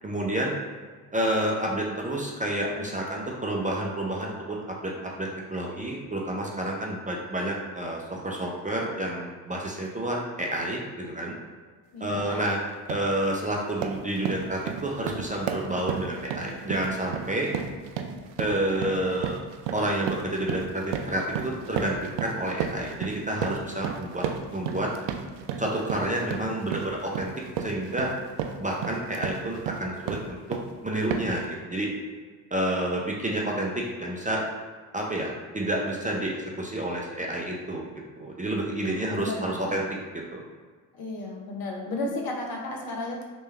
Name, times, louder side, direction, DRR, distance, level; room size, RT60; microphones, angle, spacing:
voice 1, 0.0-0.5 1.1-11.3 12.0-12.6 12.9-17.5 18.4-19.4 19.7-24.2 24.5-24.9 25.6-27.3 27.6-28.1 28.6-30.6 30.8-31.9 32.5-34.4 34.9-37.9 38.2-39.9 40.1-40.4, right 1 dB, 15° right, -2 dB, 0.6 m, -29 dB
voice 2, 11.9-12.4 38.6-39.7 40.9-43.2, left 2 dB, 50° left, 0 dB, 0.9 m, -34 dB
sound 1, 12.1-12.3 12.7-13.1 13.5-30.7 31.1-31.5, right 7 dB, 65° right, 0.5 m, -33 dB
3.2 x 3.1 x 3.3 m, 1.5 s
hypercardioid pair, 45°, 47 cm